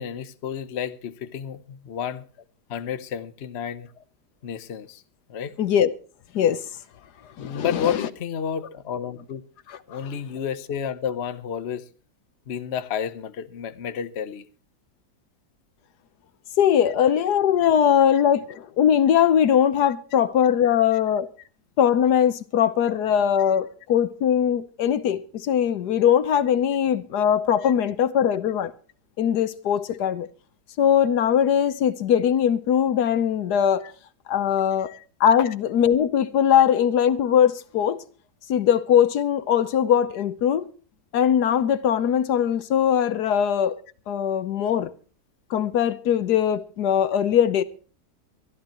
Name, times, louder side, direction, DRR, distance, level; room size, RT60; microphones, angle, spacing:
voice 1, 0.0-2.2 2.7-3.9 4.4-5.0 5.3-5.5 7.4-9.4 9.9-11.9 12.5-14.5 19.8-19.9 20.6-21.0 27.6-27.7 33.8-33.9 34.9-35.0 35.4-35.5, left 8 dB, 50° left, 1.0 m, -31 dB
voice 2, 5.6-5.9 6.3-6.6 7.4-8.0 16.6-21.3 21.8-28.7 29.2-30.3 30.8-33.8 34.3-34.9 35.2-38.0 38.5-40.7 41.1-43.8 44.1-44.9 45.5-47.6, left 9 dB, 75° left, 1.4 m, -21 dB
23.5 x 12.5 x 3.0 m
omnidirectional pair, 1.8 m